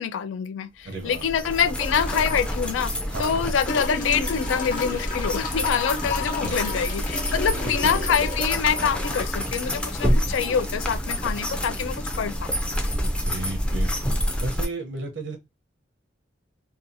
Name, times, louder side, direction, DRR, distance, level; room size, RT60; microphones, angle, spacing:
voice 1, 0.0-2.9 3.2-12.5, left 7 dB, 85° left, 0.3 m, -25 dB
voice 2, 0.8-1.2 3.1-3.5 6.1-6.6 7.6-8.0 13.0-13.9 14.4-15.4, right 2 dB, 70° right, 0.7 m, -34 dB
sound 1, 1.0-14.7, equal, 5° left, 0.4 m, -28 dB
sound 2, 1.8-2.6 3.7-10.7 12.0-12.1, left 4 dB, 40° left, 0.6 m, -33 dB
2.7 x 2.3 x 2.6 m
head